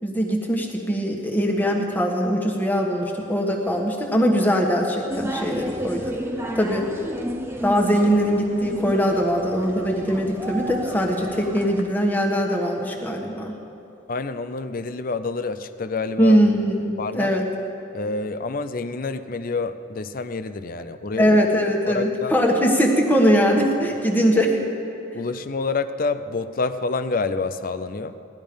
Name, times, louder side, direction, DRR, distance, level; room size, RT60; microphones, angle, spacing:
voice 1, 0.0-6.2 6.5-6.8 7.6-13.5 16.2-17.4 21.2-24.6, equal, 10° left, 0 dB, 1.3 m, -21 dB
sound 1, 5.1-11.8, equal, 10° right, 0.7 m, -32 dB
voice 2, 14.1-16.4 17.0-17.4 17.9-21.4 21.8-22.3 25.1-28.1, left 4 dB, 45° left, 11 dB, 0.5 m, -28 dB
18.0 x 12.0 x 5.2 m, 2.8 s
head